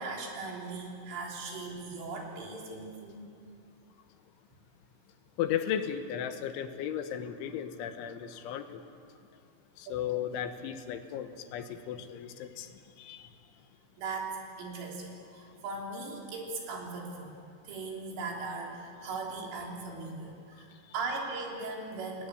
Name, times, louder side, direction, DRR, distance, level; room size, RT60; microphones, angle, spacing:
voice 1, 0.0-3.3 14.0-22.3, right 3 dB, 90° right, -1 dB, 5.9 m, -39 dB
voice 2, 5.4-8.8 9.8-12.7 13.0-13.2, left 9 dB, 80° left, 8 dB, 3.5 m, -35 dB
29.5 x 19.0 x 8.1 m, 2.4 s
omnidirectional pair, 5.5 m